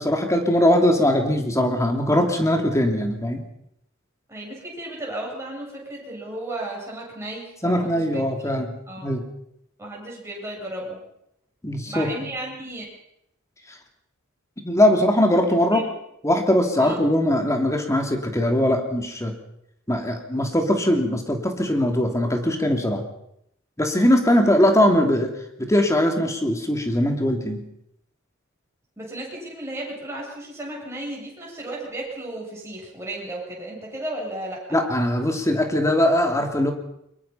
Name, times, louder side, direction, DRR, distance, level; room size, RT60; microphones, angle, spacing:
voice 1, 0.0-3.4 7.6-8.7 9.0-9.2 11.6-12.1 13.7-13.8 14.6-15.8 16.2-19.3 19.9-23.0 23.8-25.3 25.7-27.6 34.7-36.7, left 1 dB, 15° left, 4 dB, 2.9 m, -21 dB
voice 2, 4.3-8.2 8.9-9.1 9.8-11.0 11.9-12.8 15.7-15.9 16.8-17.0 29.0-34.8, right 1 dB, 15° right, -3 dB, 7.9 m, -34 dB
23.0 x 22.0 x 5.8 m, 0.76 s
head